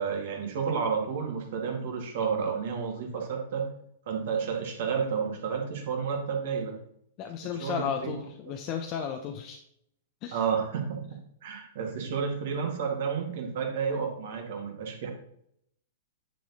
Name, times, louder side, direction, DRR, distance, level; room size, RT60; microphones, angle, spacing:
voice 1, 0.0-3.7 4.1-6.7 7.6-8.1 10.3-15.1, right 6 dB, 60° right, 2 dB, 2.1 m, -31 dB
voice 2, 7.2-9.6 10.2-10.4, left 8 dB, 40° left, 3 dB, 0.9 m, -34 dB
9.7 x 4.8 x 4.1 m, 0.71 s
figure-of-eight pair, 105°, 0 cm